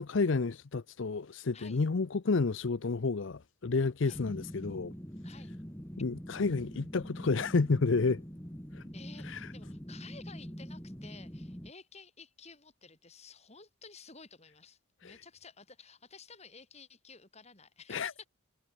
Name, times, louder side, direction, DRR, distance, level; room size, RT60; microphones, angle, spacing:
voice 1, 0.0-4.9 6.0-8.2 8.7-8.8 9.2-9.5 15.0-15.1 17.9-18.1, left 4 dB, 55° left, 0.6 m, -30 dB
sound 1, 4.1-11.7, equal, 10° left, 2.7 m, -44 dB
voice 2, 5.2-5.5 8.9-18.3, left 5 dB, 30° left, 3.8 m, -53 dB
head